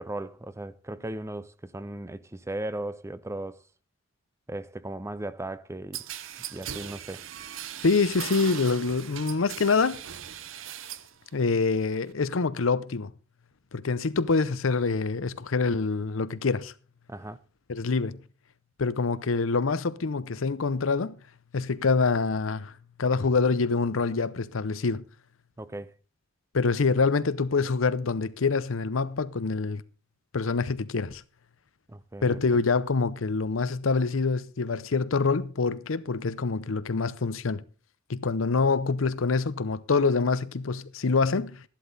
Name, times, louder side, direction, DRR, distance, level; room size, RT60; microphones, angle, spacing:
voice 1, 0.0-3.6 4.5-6.0 6.5-7.2 17.1-17.4 25.6-25.9 31.9-32.4, right 1 dB, 15° right, 0.5 m, -37 dB
sound 1, 5.9-11.1 11.5-12.1, right 10 dB, 75° right, 0.7 m, -39 dB
voice 2, 7.8-10.0 11.3-13.1 13.7-16.7 17.7-18.2 18.8-21.2 21.5-25.0 26.5-29.8 30.3-31.2 32.2-37.6 38.1-41.6, left 4 dB, 85° left, 0.7 m, -26 dB
13.0 x 11.5 x 4.0 m
head